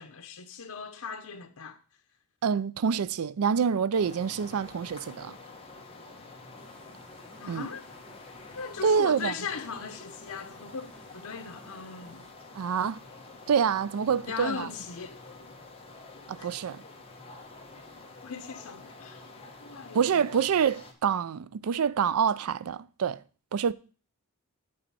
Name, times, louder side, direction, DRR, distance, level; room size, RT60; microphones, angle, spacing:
voice 1, 0.0-1.8 7.4-7.8 8.5-12.3 14.2-15.2 16.4-16.5 18.2-19.3 19.6-20.3, left 5 dB, 85° left, 0.8 m, -39 dB
voice 2, 2.4-5.4 7.5-7.7 8.8-9.3 12.6-13.0 13.5-14.7 16.3-16.8 19.9-23.2 23.5-23.7, right 7 dB, 90° right, 0.4 m, -26 dB
sound 1, 3.9-20.9, left 3 dB, 25° left, 1.4 m, -48 dB
sound 2, 6.5-12.3, equal, 5° left, 1.0 m, -57 dB
8.6 x 4.2 x 6.9 m
head